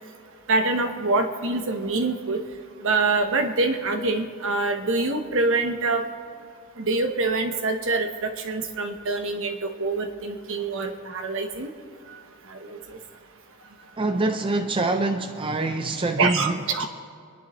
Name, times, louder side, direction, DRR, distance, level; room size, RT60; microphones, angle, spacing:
voice 1, 0.5-2.4 2.8-6.0 6.8-11.7 12.1-12.2 12.5-13.0 16.2-16.9, right 3 dB, 60° right, 6 dB, 1.1 m, -25 dB
voice 2, 14.0-16.9, right 2 dB, 25° right, 5 dB, 0.5 m, -25 dB
25.5 x 10.5 x 3.1 m, 2.2 s
head